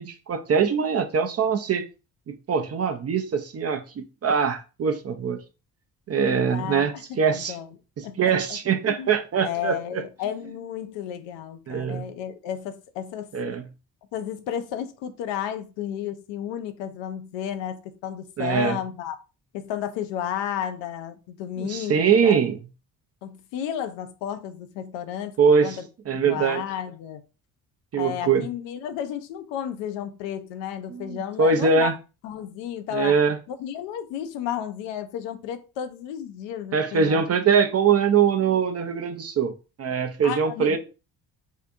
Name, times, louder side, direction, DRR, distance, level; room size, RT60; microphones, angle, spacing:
voice 1, 0.0-1.8 2.5-5.4 6.1-7.5 8.2-10.0 11.7-12.1 13.3-13.6 18.4-18.8 21.6-22.6 25.4-25.8 26.1-26.6 27.9-28.5 30.9-31.9 32.9-33.4 36.7-39.5 39.8-40.8, right 6 dB, 30° right, 0.6 m, -22 dB
voice 2, 6.3-7.8 8.0-8.6 8.8-9.1 9.4-13.3 14.1-19.2 19.5-22.4 23.2-25.3 25.6-25.9 26.2-27.2 28.0-31.9 32.2-33.2 33.5-37.2 40.2-40.8, left 10 dB, 65° left, 0.6 m, -32 dB
2.7 x 2.5 x 3.4 m
hypercardioid pair, 50°, 49 cm